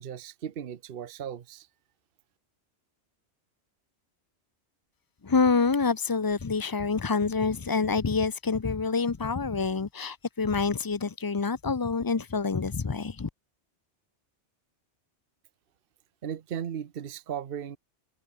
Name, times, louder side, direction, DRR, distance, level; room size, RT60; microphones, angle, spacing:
voice 1, 0.0-1.7 16.2-17.8, right 8 dB, 55° right, 1.0 m, -36 dB
voice 2, 5.2-13.3, left 4 dB, 30° left, 0.4 m, -27 dB
omnidirectional pair, 1.2 m